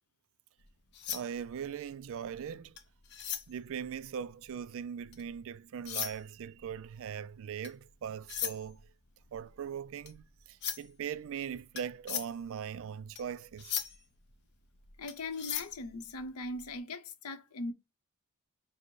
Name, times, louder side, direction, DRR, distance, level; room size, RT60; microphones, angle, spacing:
sound 1, 0.6-5.4 5.7-16.7, left 9 dB, 50° left, 0.6 m, -41 dB
voice 1, 1.1-2.8 3.5-8.9 9.3-13.9, right 8 dB, 65° right, 0.3 m, -40 dB
voice 2, 15.0-17.7, left 2 dB, 90° left, 0.7 m, -40 dB
4.4 x 2.1 x 4.5 m
head